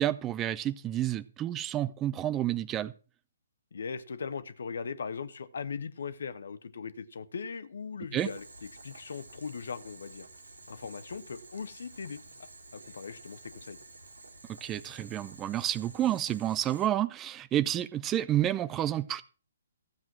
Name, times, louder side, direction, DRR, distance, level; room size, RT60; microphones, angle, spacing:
voice 1, 0.0-2.9 8.1-8.3 14.5-19.2, right 12 dB, 20° right, 0.5 m, -30 dB
voice 2, 3.7-10.3 10.7-13.8, left 5 dB, 60° left, 1.1 m, -39 dB
Boiling, 8.2-16.9, right 2 dB, 75° right, 2.3 m, -51 dB
15.0 x 7.5 x 6.1 m
figure-of-eight pair, 130°, 0 cm